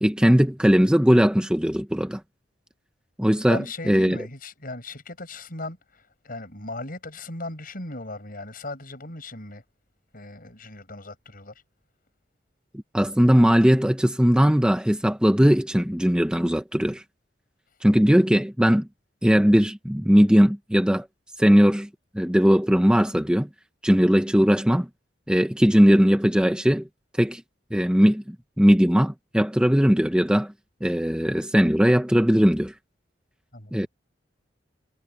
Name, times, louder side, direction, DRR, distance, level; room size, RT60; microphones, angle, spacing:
voice 1, 0.0-2.2 3.2-4.2 12.9-17.0 17.8-18.9 19.2-21.1 21.4-21.9 22.1-23.5 23.8-24.9 25.3-26.9 27.2-27.4 27.7-30.5 30.8-32.7 33.7-33.9, equal, 5° right, 0.8 m, -19 dB
voice 2, 3.5-9.6 10.1-11.5 33.5-33.7, left 2 dB, 50° left, 7.3 m, -37 dB
head